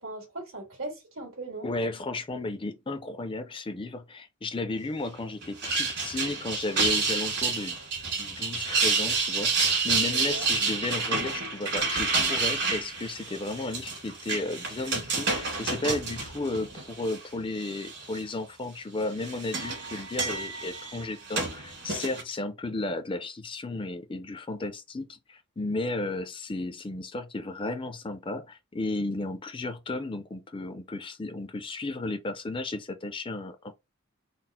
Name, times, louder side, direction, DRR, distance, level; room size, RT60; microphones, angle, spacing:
voice 1, 0.0-1.7 10.1-10.4, right 2 dB, 70° right, 2.0 m, -39 dB
voice 2, 1.6-7.8 8.2-33.7, left 2 dB, 25° left, 0.4 m, -34 dB
sound 1, 5.4-17.2 17.6-18.2 19.0-22.2, right 4 dB, 55° right, 2.0 m, -29 dB
4.1 x 2.0 x 4.2 m
head